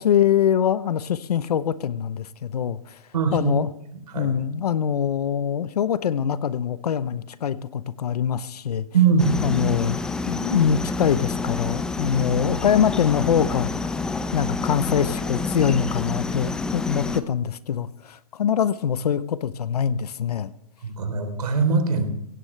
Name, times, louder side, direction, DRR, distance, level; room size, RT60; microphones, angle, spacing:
voice 1, 0.0-3.0 3.3-3.7 4.2-8.9 9.4-10.0 10.3-13.9 14.3-20.5, left 8 dB, 85° left, 15 dB, 0.8 m, -23 dB
voice 2, 3.1-3.5 4.1-4.3 8.9-9.4 20.8-22.2, right 5 dB, 90° right, 7 dB, 3.6 m, -21 dB
sound 1, 9.2-17.2, left 3 dB, 5° left, 0.4 m, -28 dB
17.0 x 16.0 x 3.3 m, 0.80 s
hypercardioid pair, 155°, 19 cm